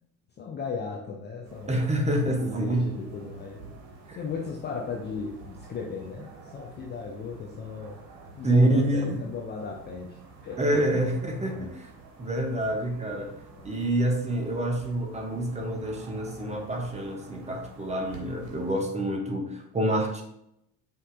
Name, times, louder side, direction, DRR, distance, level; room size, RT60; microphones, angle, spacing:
voice 1, 0.4-1.8 2.2-3.6 4.2-8.0 8.4-11.1 11.4-11.7 13.5-13.9, left 5 dB, 20° left, 0 dB, 0.4 m, -36 dB
sound 1, 1.4-18.8, right 4 dB, 50° right, 1.1 m, -49 dB
voice 2, 1.7-2.9 4.1-4.2 8.4-9.2 10.6-11.9 12.2-13.3 13.6-20.2, right 1 dB, 15° right, 2 dB, 0.7 m, -27 dB
5.2 x 2.7 x 2.5 m, 0.77 s
figure-of-eight pair, 60°, 50 cm